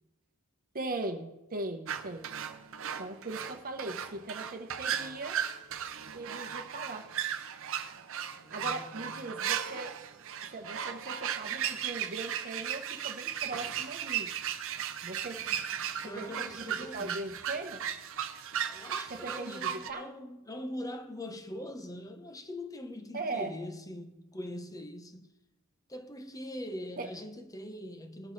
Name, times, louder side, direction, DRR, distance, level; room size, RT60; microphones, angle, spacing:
voice 1, 0.7-2.3 3.0-5.4 6.1-7.1 8.5-9.9 10.5-14.3 15.0-15.4 16.1-17.9 19.1-20.1 23.1-23.5 27.0-27.1, right 2 dB, 40° right, 1.0 m, -39 dB
sound 1, 1.9-19.9, right 9 dB, 65° right, 0.7 m, -36 dB
voice 2, 8.4-9.4 15.5-15.6 15.8-17.4 18.6-25.3 25.9-28.3, left 1 dB, 15° left, 0.9 m, -43 dB
19.5 x 7.0 x 4.1 m
head